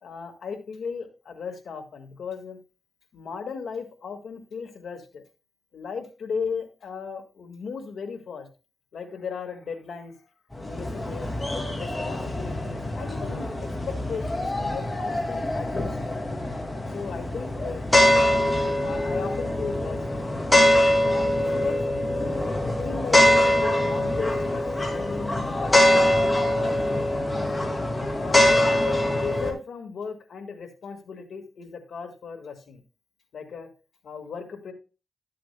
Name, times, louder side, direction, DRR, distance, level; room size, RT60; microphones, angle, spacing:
voice 1, 0.0-2.6 3.1-5.2 5.7-8.5 8.9-10.2 10.6-11.4 11.7-16.1 16.9-17.9 18.2-18.5 18.8-20.3 21.0-27.1 28.1-32.8 33.3-33.7 34.0-34.7, left 5 dB, 80° left, 5 dB, 1.8 m, -36 dB
sound 1, 10.5-29.5, left 1 dB, 20° left, 2.3 m, -23 dB
13.0 x 7.5 x 2.2 m, 0.32 s
cardioid pair, 70°, 0 cm